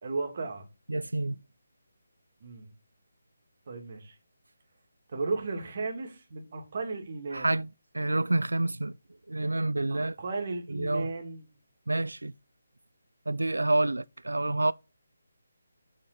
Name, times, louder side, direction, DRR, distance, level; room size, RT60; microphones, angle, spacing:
voice 1, 0.0-0.7 2.4-2.7 3.7-4.1 5.1-7.6 9.9-11.4, right 3 dB, 45° right, 2.0 m, -35 dB
voice 2, 0.9-1.4 7.3-7.7 7.9-8.9 9.3-10.2 10.7-11.1 11.9-12.3 13.3-14.7, right 2 dB, 75° right, 0.3 m, -28 dB
7.6 x 4.2 x 6.5 m
figure-of-eight pair, 150°, 0 cm